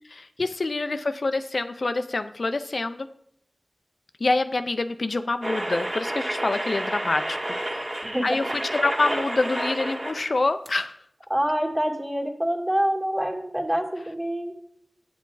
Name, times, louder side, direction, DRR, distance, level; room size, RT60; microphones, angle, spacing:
voice 1, 0.1-3.1 4.2-7.4 7.7-7.9 8.2-11.0, left 3 dB, 70° left, 9 dB, 0.4 m, -26 dB
sound 1, 5.4-10.4 10.7-10.8, right 1 dB, 40° right, 1.7 m, -30 dB
voice 2, 8.1-8.5 11.3-14.6, equal, 20° right, 1 dB, 1.9 m, -26 dB
8.1 x 6.9 x 4.7 m, 0.72 s
wide cardioid pair, 50°, 0 cm